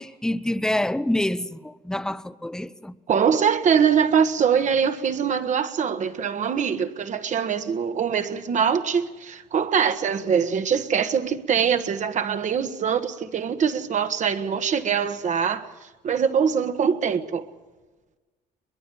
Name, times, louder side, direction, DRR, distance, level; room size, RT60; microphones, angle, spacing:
voice 1, 0.0-3.0, left 1 dB, 5° left, 0.8 m, -27 dB
voice 2, 3.1-15.7 16.0-17.5, right 7 dB, 45° right, 1.5 m, -23 dB
22.5 x 22.0 x 7.7 m
cardioid pair, 110°, 17 cm